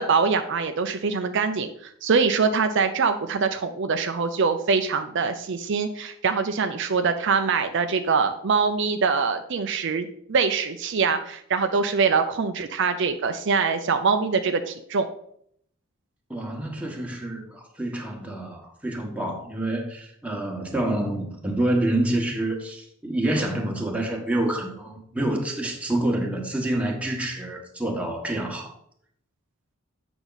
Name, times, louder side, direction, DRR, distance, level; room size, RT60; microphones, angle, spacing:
voice 1, 0.0-15.1, right 5 dB, 60° right, 7 dB, 0.5 m, -24 dB
voice 2, 16.3-28.7, right 1 dB, 5° right, 0 dB, 1.3 m, -27 dB
8.0 x 5.9 x 4.0 m, 0.68 s
head